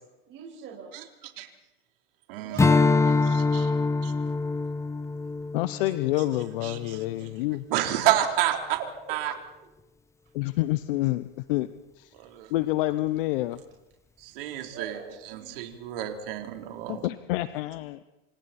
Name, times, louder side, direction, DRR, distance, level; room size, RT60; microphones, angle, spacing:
voice 1, 0.2-1.0 1.6-1.7 2.3-3.3 3.6-3.8 6.8-7.4 8.0-8.1 14.5-15.7, right 7 dB, 40° right, -1 dB, 6.0 m, -43 dB
voice 2, 2.3-2.6 3.2-3.7 4.0-4.1 6.6-7.0 7.7-8.5 9.1-9.3 12.1-12.5 14.2-15.0 15.3-17.1, right 13 dB, 70° right, 3 dB, 3.9 m, -29 dB
Strum, 2.6-7.3, left 3 dB, 10° left, 0.8 m, -25 dB
voice 3, 5.5-7.6 10.3-11.7 12.0-12.1 12.5-13.6 16.9-18.0, left 17 dB, 65° left, 13 dB, 1.0 m, -28 dB
28.0 x 26.5 x 4.4 m, 0.97 s
hypercardioid pair, 110°, 29 cm